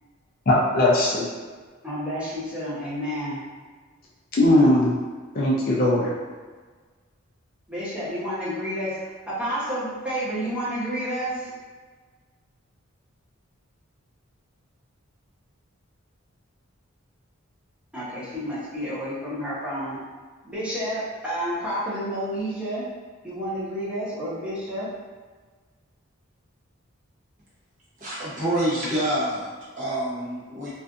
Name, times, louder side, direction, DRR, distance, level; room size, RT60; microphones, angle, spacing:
voice 1, 0.5-1.2 4.3-4.9 5.3-6.1, left 1 dB, 45° left, -5 dB, 0.4 m, -19 dB
voice 2, 1.8-3.4 7.7-9.0 9.3-11.5 17.9-20.0 20.4-22.9 23.2-24.9, equal, 5° right, -11 dB, 0.8 m, -30 dB
voice 3, 28.0-30.7, right 1 dB, 35° right, -9 dB, 0.8 m, -27 dB
2.5 x 2.4 x 2.4 m, 1.4 s
head